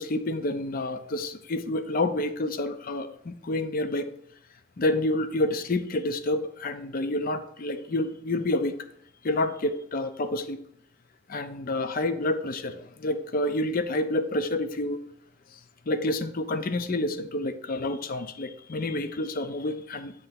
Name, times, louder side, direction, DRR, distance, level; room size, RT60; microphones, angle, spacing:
voice 1, 0.0-4.1 4.8-8.8 9.2-10.6 11.3-15.0 15.5-15.6 15.9-20.1, left 2 dB, 40° left, 10 dB, 0.5 m, -28 dB
8.1 x 3.3 x 5.7 m, 0.73 s
head